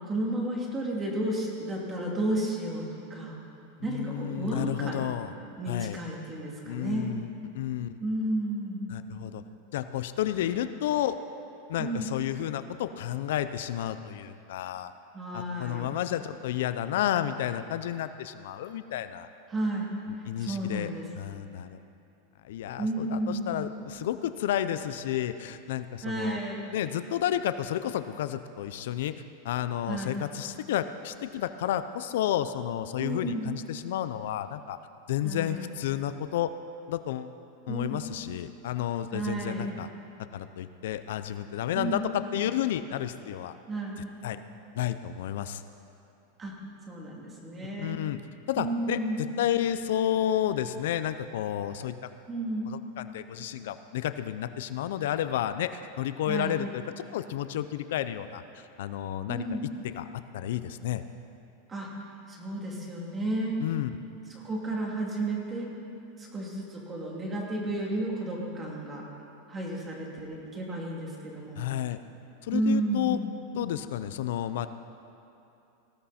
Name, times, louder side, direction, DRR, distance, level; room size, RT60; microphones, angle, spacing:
voice 1, 0.1-2.8 3.1-3.4 3.8-5.1 5.6-7.1 8.0-8.9 10.4-10.6 11.8-12.1 15.1-16.0 19.5-19.9 20.4-21.1 22.8-23.5 26.0-26.6 29.9-30.1 33.0-33.5 35.2-35.6 37.7-38.0 39.1-39.7 41.7-42.0 43.7-44.0 46.4-46.6 46.9-48.0 48.6-49.2 52.3-52.7 56.3-56.6 59.3-59.6 61.7-61.9 62.3-63.6 64.3-65.7 66.2-69.1 69.5-71.6 72.5-73.3, right 1 dB, 15° right, -2 dB, 2.8 m, -32 dB
voice 2, 3.9-5.3 5.7-6.0 6.6-7.9 8.9-9.4 9.7-11.2 11.7-14.9 15.3-19.3 20.2-21.8 22.4-26.4 26.7-29.1 29.4-34.8 35.1-36.5 36.9-37.3 37.7-39.9 40.3-43.6 44.2-44.4 44.7-45.6 47.8-48.2 48.5-51.9 52.7-56.8 57.1-59.6 59.8-61.0 63.6-64.0 71.6-72.0 72.4-73.2 73.5-74.7, left 11 dB, 70° left, 11 dB, 0.6 m, -31 dB
19.5 x 15.5 x 4.3 m, 2.7 s
supercardioid pair, 155°, 0 cm